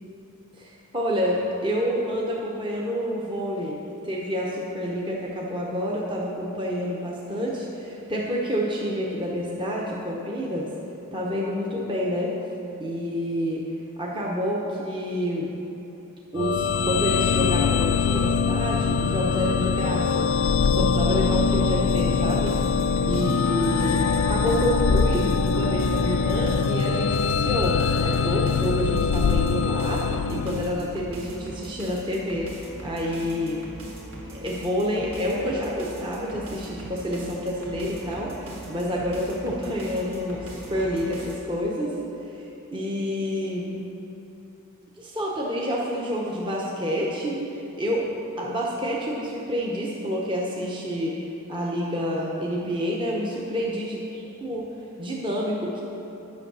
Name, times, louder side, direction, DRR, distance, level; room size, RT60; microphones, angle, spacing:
voice 1, 0.5-3.8 4.0-10.7 11.1-12.3 12.8-13.6 14.0-15.5 16.3-22.7 23.1-33.6 34.3-42.0 42.2-43.8 45.0-48.1 48.4-51.2 51.5-54.0 54.4-54.7 55.0-55.8, equal, 20° right, -4 dB, 0.9 m, -28 dB
sound 1, 16.4-31.1, left 5 dB, 60° left, 0.3 m, -23 dB
sound 2, 21.9-41.3, right 1 dB, 60° right, 1.8 m, -41 dB
9.7 x 6.4 x 6.2 m, 2.9 s
head